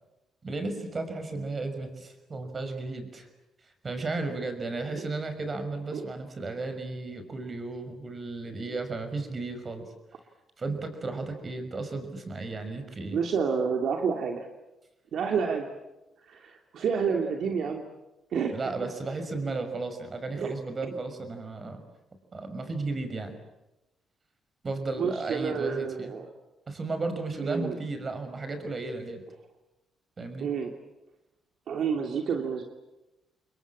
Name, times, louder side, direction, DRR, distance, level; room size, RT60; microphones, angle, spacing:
voice 1, 0.4-3.3 3.8-9.8 10.6-13.2 18.5-21.8 22.3-23.3 24.6-26.1 26.7-29.2 30.2-30.5, right 3 dB, 35° right, 8 dB, 6.0 m, -34 dB
voice 2, 13.1-14.5 15.1-15.7 16.3-17.8 18.3-18.6 20.3-20.5 25.0-26.3 27.4-27.8 30.4-30.7 31.7-32.6, right 6 dB, 65° right, 3 dB, 2.8 m, -29 dB
29.0 x 22.0 x 8.8 m, 0.98 s
cardioid pair, 90°, 0 cm